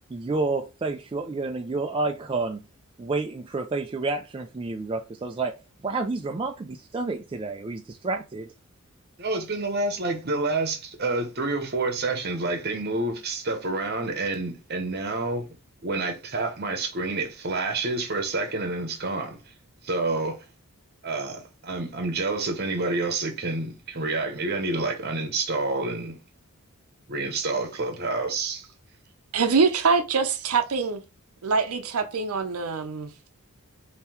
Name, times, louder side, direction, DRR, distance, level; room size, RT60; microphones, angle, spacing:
voice 1, 0.1-2.7 3.0-5.6 5.8-8.5, right 3 dB, 25° right, 0.3 m, -29 dB
voice 2, 9.2-15.5 15.8-19.4 19.8-20.4 21.0-26.2 27.1-28.7, right 3 dB, 45° right, 0.9 m, -28 dB
voice 3, 29.3-31.0 31.4-33.1, right 5 dB, 80° right, 0.6 m, -24 dB
3.6 x 2.8 x 4.3 m
head